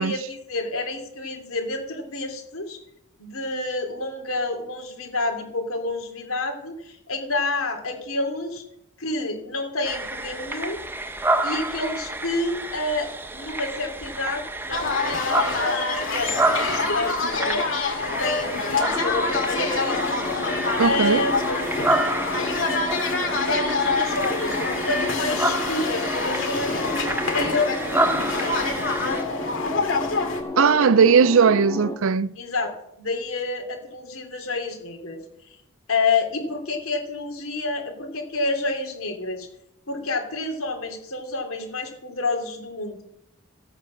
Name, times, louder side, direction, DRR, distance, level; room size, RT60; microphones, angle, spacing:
voice 1, 0.0-2.8 3.2-8.6 9.0-10.8 11.4-17.7 18.0-20.2 20.8-21.4 23.5-26.9 27.2-28.8 30.5-30.9 32.4-32.7 33.0-35.2 35.9-39.5 39.9-43.0, left 3 dB, 80° left, 3.1 m, -29 dB
sound 1, 9.8-29.2, right 2 dB, 10° right, 0.7 m, -29 dB
sound 2, 14.7-30.4, left 3 dB, 60° left, 2.1 m, -26 dB
sound 3, 18.9-32.0, left 1 dB, 15° left, 1.8 m, -32 dB
voice 2, 20.8-21.2 30.6-32.3, right 6 dB, 70° right, 0.5 m, -18 dB
15.0 x 8.5 x 6.3 m
head